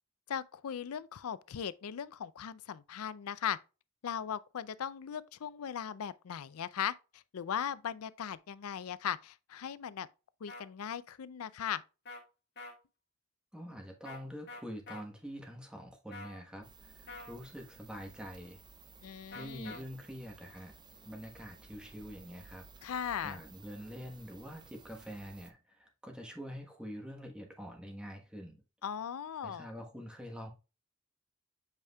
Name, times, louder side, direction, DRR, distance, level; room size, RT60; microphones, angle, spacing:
voice 1, 0.3-3.6 4.0-10.1 10.4-11.8 19.0-19.8 22.8-23.4 28.8-29.7, left 8 dB, 85° left, 0.4 m, -38 dB
sound 1, 10.5-10.6 12.0-12.2 12.6-12.7 14.0-14.2 14.5-15.0 16.1-16.4 17.1-17.3 19.3-19.8, left 3 dB, 50° left, 1.6 m, -46 dB
voice 2, 13.5-18.6 19.3-20.8 21.0-22.9 23.2-28.6 29.4-30.5, equal, 5° right, 1.1 m, -46 dB
sound 2, 16.6-25.5, right 4 dB, 20° right, 0.5 m, -57 dB
8.1 x 5.0 x 2.3 m
head